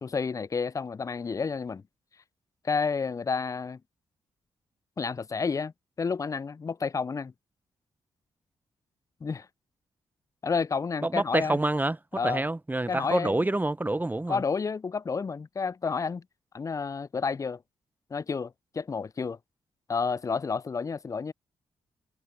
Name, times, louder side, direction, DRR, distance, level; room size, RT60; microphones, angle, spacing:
voice 1, 0.0-1.8 2.6-3.8 5.0-7.3 9.2-9.5 10.4-11.6 12.1-12.4 12.9-13.4 14.3-16.2 16.5-17.6 18.1-19.4 19.9-21.3, left 5 dB, 30° left, 0.3 m, -30 dB
voice 2, 11.0-12.0 12.2-14.4, right 2 dB, 15° right, 0.7 m, -27 dB
supercardioid pair, 45°, 12 cm